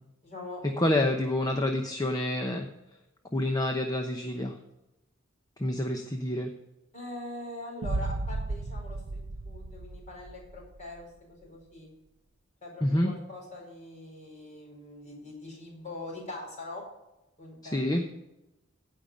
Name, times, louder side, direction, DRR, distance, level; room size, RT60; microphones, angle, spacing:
voice 1, 0.2-0.6 6.9-9.2 9.4-11.9 12.6-16.8 17.4-18.1, left 2 dB, 35° left, -2 dB, 4.8 m, -43 dB
voice 2, 0.8-2.7 3.3-4.6 5.6-6.5 12.8-13.1 17.7-18.0, left 1 dB, 20° left, 3 dB, 0.8 m, -27 dB
sound 1, 7.8-10.8, right 2 dB, 85° right, 0.6 m, -34 dB
16.5 x 5.5 x 5.2 m, 0.95 s
head